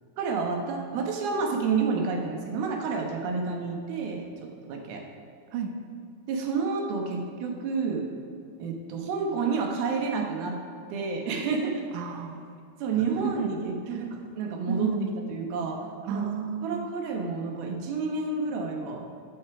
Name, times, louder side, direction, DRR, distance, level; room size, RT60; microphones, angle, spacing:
voice 1, 0.2-5.1 6.3-8.1 8.6-10.6 10.9-11.8 12.8-14.9 15.3-16.3 16.6-19.1, right 4 dB, 90° right, 1 dB, 3.1 m, -30 dB
voice 2, 11.9-12.5 13.1-13.5 13.9-14.0 14.7-15.3 16.0-16.9, right 6 dB, 70° right, 4 dB, 2.0 m, -32 dB
13.0 x 8.1 x 4.9 m, 2.5 s
omnidirectional pair, 4.2 m